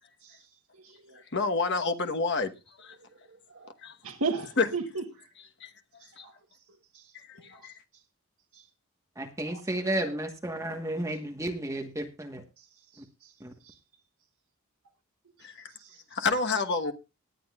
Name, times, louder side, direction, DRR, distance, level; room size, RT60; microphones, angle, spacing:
voice 1, 0.8-1.2 3.5-3.7 4.0-5.3 6.0-6.3 6.9-7.7 8.5-8.6 9.5-9.6 12.6-12.7 12.9-13.3 13.6-13.8 15.4-15.5 15.8-16.0, right 4 dB, 75° right, 1.3 m, -37 dB
voice 2, 1.3-2.5 2.8-3.0 3.8-3.9 4.6-4.7 5.6-5.7 6.2-6.3 7.1-7.7 15.4-15.7 16.1-16.9, left 4 dB, 55° left, 1.2 m, -28 dB
voice 3, 9.1-12.4 13.0-13.1 13.4-13.5, right 1 dB, 15° right, 1.3 m, -32 dB
18.5 x 10.0 x 2.4 m
head